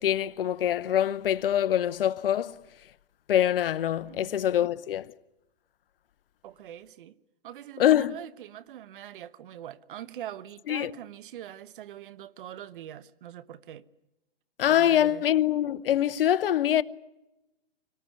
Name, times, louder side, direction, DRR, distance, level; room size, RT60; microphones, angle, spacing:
voice 1, 0.0-2.6 3.3-5.1 7.8-8.2 10.7-10.9 14.6-16.8, left 11 dB, 70° left, 0.9 m, -24 dB
voice 2, 4.0-4.7 6.4-7.2 7.4-13.9 14.7-15.2, right 11 dB, 60° right, 1.1 m, -43 dB
25.5 x 19.0 x 9.6 m
hypercardioid pair, 135°, 30 cm